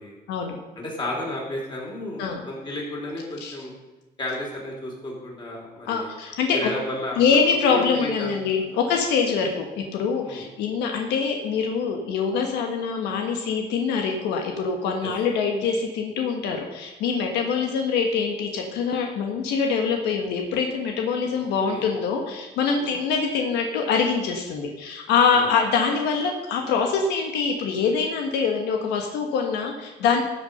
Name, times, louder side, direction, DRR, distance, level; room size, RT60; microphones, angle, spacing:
voice 1, 0.8-3.7 4.2-6.1 6.5-7.2 7.7-8.8 10.2-10.4 15.0-15.1 21.3-21.9 22.8-23.0 25.3-25.5, left 1 dB, 25° left, -2 dB, 4.3 m, -33 dB
voice 2, 5.9-6.7 7.2-30.2, left 5 dB, 85° left, 3 dB, 1.4 m, -24 dB
13.5 x 6.9 x 5.4 m, 1.1 s
cardioid pair, 110°, 17 cm